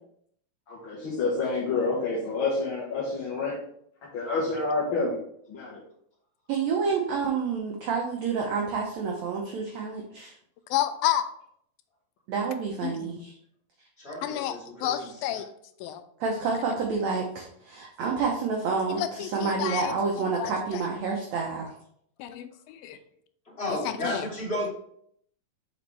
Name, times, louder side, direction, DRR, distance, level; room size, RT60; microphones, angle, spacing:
voice 1, 0.7-3.6 4.1-5.2 5.5-5.8, left 3 dB, 60° left, -4 dB, 1.3 m, -28 dB
voice 2, 6.5-10.3 12.3-13.3 16.2-21.7, right 5 dB, 70° right, 0 dB, 1.7 m, -29 dB
voice 3, 10.7-11.2 12.8-13.3 14.2-15.5 15.8-16.0 18.9-19.9 20.4-20.9 22.2-23.0 23.7-24.3, left 12 dB, 90° left, 10 dB, 2.4 m, -30 dB
voice 4, 14.0-15.4 23.4-24.7, left 1 dB, 25° left, -6 dB, 3.0 m, -33 dB
7.2 x 5.3 x 3.4 m, 0.66 s
omnidirectional pair, 4.1 m